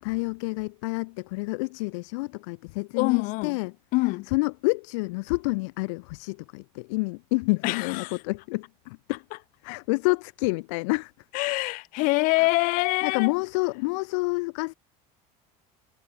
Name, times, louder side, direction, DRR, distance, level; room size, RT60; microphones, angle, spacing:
voice 1, 0.0-3.7 4.3-9.2 9.6-11.1 12.4-12.5 13.0-14.7, left 27 dB, 85° left, 1.2 m, -28 dB
voice 2, 2.9-3.6 3.9-4.3 7.6-8.2 11.3-13.3, left 24 dB, 60° left, 2.5 m, -25 dB
cardioid pair, 140°, 15 cm